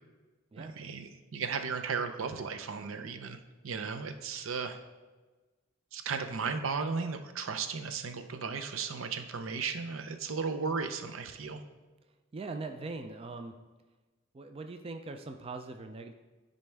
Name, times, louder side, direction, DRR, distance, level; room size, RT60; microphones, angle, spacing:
voice 1, 0.6-3.4 3.6-4.8 5.9-11.6, right 5 dB, 80° right, 8 dB, 0.6 m, -35 dB
voice 2, 12.3-13.6 14.3-16.1, right 3 dB, 30° right, 7 dB, 0.3 m, -41 dB
10.5 x 4.1 x 3.4 m, 1.3 s
head